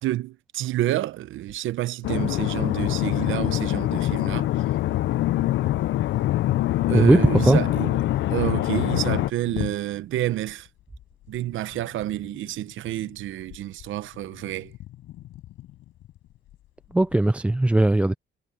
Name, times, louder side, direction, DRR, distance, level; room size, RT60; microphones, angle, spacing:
voice 1, 0.0-4.5 6.9-8.0 8.3-10.7 11.3-14.7, right 14 dB, 80° right, 0.8 m, -29 dB
sound 1, 2.0-9.3, left 15 dB, 70° left, 0.5 m, -24 dB
voice 2, 6.9-7.6 16.9-18.1, right 1 dB, 5° right, 0.3 m, -18 dB
sound 2, 8.4-17.3, left 14 dB, 90° left, 5.6 m, -44 dB
cardioid pair, 90°, 20 cm